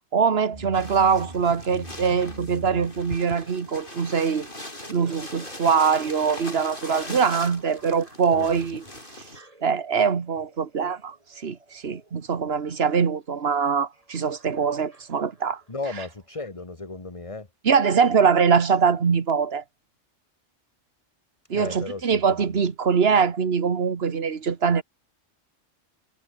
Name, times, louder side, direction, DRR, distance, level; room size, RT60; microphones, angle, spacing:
voice 1, 0.1-4.5 4.9-8.8 9.6-11.2 11.4-15.6 17.7-19.6 21.5-24.8, right 6 dB, 60° right, 1.7 m, -23 dB
sound 1, 0.5-16.6 16.9-17.0, right 2 dB, 30° right, 2.7 m, -48 dB
sound 2, 0.7-9.4, left 1 dB, 45° left, 6.5 m, -40 dB
voice 2, 8.3-8.7 15.7-17.5 21.5-22.4, left 3 dB, 25° left, 2.0 m, -35 dB
omnidirectional pair, 1.2 m